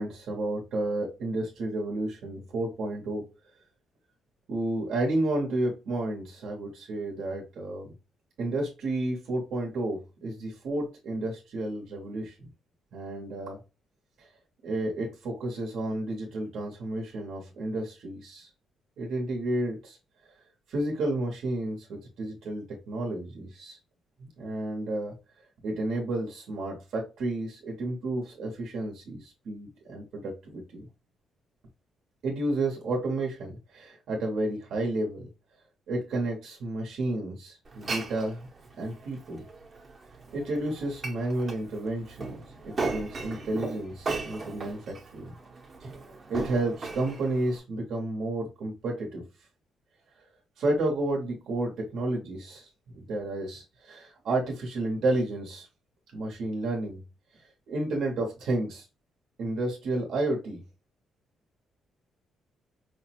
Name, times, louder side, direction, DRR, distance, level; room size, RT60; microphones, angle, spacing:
voice 1, 0.0-3.2 4.5-7.9 8.4-12.3 12.9-13.6 14.2-14.3 14.6-18.5 19.0-20.0 20.7-23.8 24.2-25.1 25.6-30.9 32.2-35.3 35.9-38.5 38.8-39.4 40.3-45.3 45.8-45.9 46.3-49.2 50.6-55.7 56.1-57.0 57.7-58.8 59.4-60.6, right 2 dB, 70° right, -1 dB, 1.0 m, -31 dB
Glass, 37.7-47.6, right 3 dB, 45° right, 0.9 m, -38 dB
4.8 x 2.0 x 2.9 m, 0.29 s
cardioid pair, 90°, 0 cm